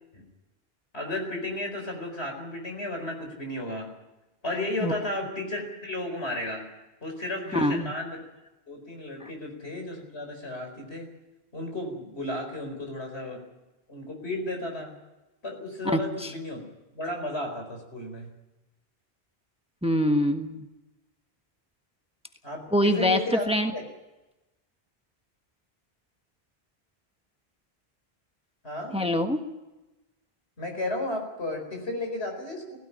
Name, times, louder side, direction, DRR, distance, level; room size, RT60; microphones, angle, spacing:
voice 1, 0.9-3.9 4.4-6.6 7.0-8.2 8.7-11.1 11.5-13.5 13.9-14.9 15.4-16.6 16.9-18.3 22.4-23.8 28.6-29.0 30.6-32.8, left 1 dB, 80° left, 3 dB, 4.9 m, -33 dB
voice 2, 7.5-7.9 9.2-9.3 15.8-16.3 19.8-20.7 22.7-23.2 23.5-23.7 28.9-29.4, equal, 5° right, 6 dB, 1.3 m, -24 dB
16.5 x 16.0 x 9.8 m, 1.0 s
omnidirectional pair, 1.1 m